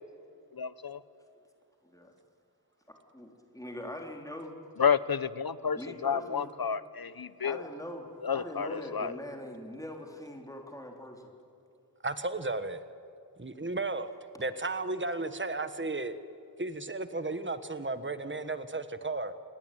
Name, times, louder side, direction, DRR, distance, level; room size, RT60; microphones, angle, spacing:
voice 1, 0.5-1.0 4.8-7.6 8.2-9.1, left 7 dB, 65° left, 16 dB, 0.9 m, -30 dB
voice 2, 2.9-4.6 5.7-6.5 7.4-8.1 8.3-11.3, left 1 dB, 10° left, 2 dB, 3.6 m, -42 dB
voice 3, 12.0-12.8 13.4-14.1 14.4-16.2 16.6-19.3, right 2 dB, 30° right, 11 dB, 1.4 m, -34 dB
28.5 x 21.0 x 9.3 m, 2.6 s
wide cardioid pair, 50°, 38 cm